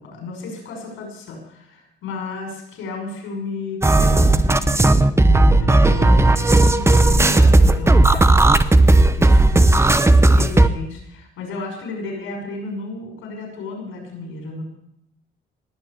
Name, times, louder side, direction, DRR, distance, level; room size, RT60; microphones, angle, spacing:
voice 1, 0.0-9.6 10.4-14.6, left 3 dB, 85° left, 1 dB, 6.1 m, -33 dB
sound 1, 3.8-10.7, right 2 dB, 15° right, 0.9 m, -14 dB
19.5 x 6.6 x 8.8 m, 0.73 s
cardioid pair, 90°, 20 cm